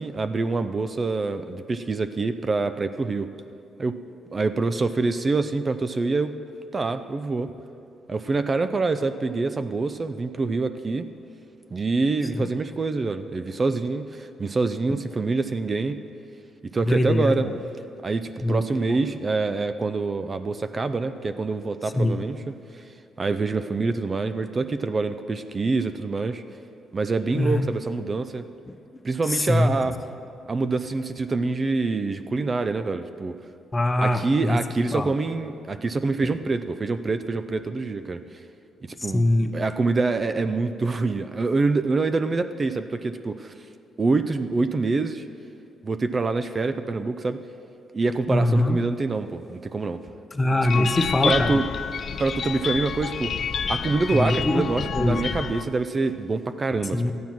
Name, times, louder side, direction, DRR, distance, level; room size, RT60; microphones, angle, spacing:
voice 1, 0.0-3.3 3.8-4.0 4.3-6.3 6.7-7.5 8.1-11.1 11.7-16.0 16.7-17.5 18.0-22.4 22.7-22.8 23.2-26.4 26.9-28.4 29.0-30.0 30.5-33.4 34.0-38.4 39.0-39.3 39.5-43.5 44.0-45.2 45.8-47.4 47.9-50.0 50.8-50.9 51.2-51.7 52.2-53.3 53.7-57.1, right 3 dB, 30° right, 10 dB, 0.5 m, -26 dB
voice 2, 16.8-17.5 18.4-18.6 18.9-19.0 21.9-22.2 27.3-27.7 29.3-29.7 33.7-34.6 34.9-35.1 36.2-36.4 39.0-39.5 48.3-48.8 50.3-51.6 54.1-54.7 54.9-55.3 56.9-57.1, left 1 dB, 20° left, 8 dB, 0.8 m, -23 dB
sound 1, 50.6-55.6, left 6 dB, 55° left, 0.6 m, -29 dB
13.0 x 9.4 x 6.0 m, 2.6 s
cardioid pair, 90°, 0 cm